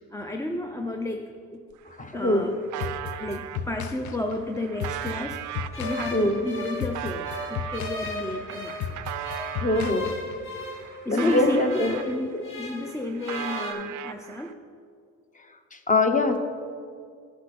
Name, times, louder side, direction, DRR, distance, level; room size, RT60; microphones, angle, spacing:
voice 1, 0.1-1.6 2.1-2.6 3.2-8.8 9.2-9.5 11.0-11.6 11.9-14.6, left 1 dB, 10° left, 4 dB, 0.5 m, -32 dB
sound 1, 1.7-1.8 2.0-3.6 4.2-10.0 10.5-12.4 12.7-14.5, right 11 dB, 80° right, 0.5 m, -37 dB
voice 2, 2.0-2.5 6.1-6.4 9.6-10.2 11.1-12.0 12.3-12.4 15.7-16.4, left 2 dB, 25° left, 6 dB, 0.9 m, -23 dB
sound 2, 2.8-10.6, left 7 dB, 70° left, 0.6 m, -35 dB
sound 3, 5.7-8.9 9.2-12.9 13.2-13.7, left 2 dB, 45° left, 2.2 m, -37 dB
14.0 x 6.0 x 4.2 m, 2.2 s
cardioid pair, 90°, 30 cm